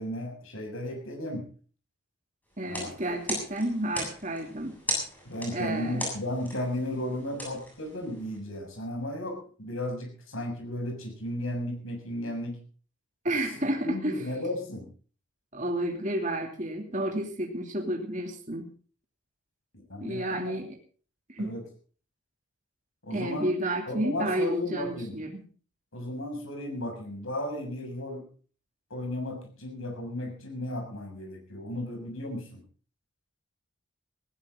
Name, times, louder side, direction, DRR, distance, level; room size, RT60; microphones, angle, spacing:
voice 1, 0.0-1.5 2.6-2.9 5.2-12.6 13.6-14.9 19.9-20.5 21.4-21.6 23.0-23.5 23.9-25.1 25.9-28.2 28.9-32.6, left 1 dB, 75° left, 3 dB, 6.6 m, -34 dB
sound 1, 2.6-8.4, equal, 10° left, 7.5 m, -38 dB
voice 2, 2.6-4.8 5.5-6.0 13.2-14.2 15.5-18.7 20.0-20.8 21.3-21.6 23.1-25.5, right 1 dB, 35° right, 2 dB, 2.8 m, -31 dB
19.5 x 16.0 x 3.8 m, 0.42 s
head